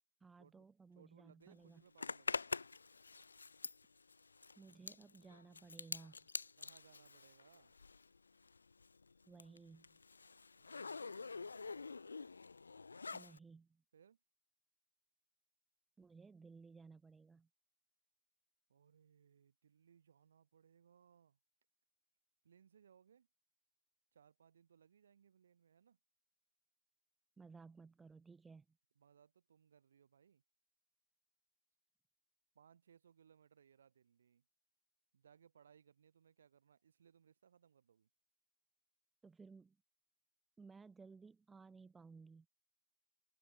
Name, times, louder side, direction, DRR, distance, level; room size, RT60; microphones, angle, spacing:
voice 1, 0.2-1.8 4.6-6.3 9.3-10.0 13.1-13.8 16.0-17.5 27.4-28.8 39.2-39.8 40.6-42.5, right 4 dB, 10° right, 0.3 m, -58 dB
voice 2, 0.9-2.5 6.6-7.7 10.5-11.8 13.9-14.2 18.7-21.4 22.4-23.3 24.1-26.0 29.0-30.4 32.5-34.4 35.1-38.1, right 7 dB, 65° right, 6.1 m, -68 dB
Zipper (clothing), 2.0-8.2 8.4-13.4, left 4 dB, 90° left, 0.3 m, -46 dB
hypercardioid pair, 145°, 0 cm